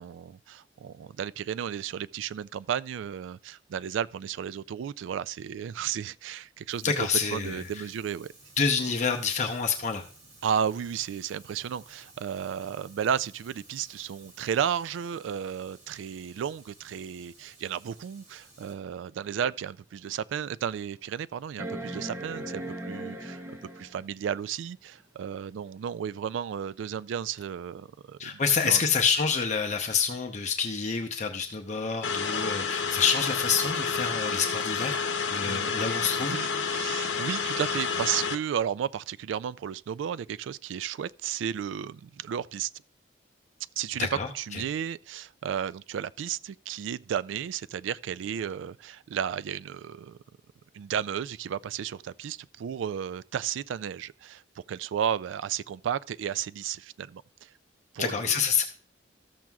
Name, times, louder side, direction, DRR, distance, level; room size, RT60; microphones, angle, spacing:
voice 1, 0.0-6.8 7.3-8.3 10.4-23.4 23.8-28.8 35.4-42.7 43.8-44.1 44.3-50.2 50.7-57.5 57.9-58.2, right 8 dB, 85° right, 0.3 m, -33 dB
Fire, 6.7-18.7, right 2 dB, 45° right, 3.0 m, -55 dB
voice 2, 6.8-7.8 8.6-10.0 28.2-35.0 35.3-36.4 44.0-44.6 58.0-58.6, left 6 dB, 40° left, 0.8 m, -27 dB
sound 1, 20.1-20.2 21.6-24.1 25.8-25.9, right 1 dB, 15° right, 0.8 m, -38 dB
sound 2, 32.0-38.3, left 5 dB, 75° left, 0.9 m, -29 dB
13.5 x 7.4 x 2.3 m
head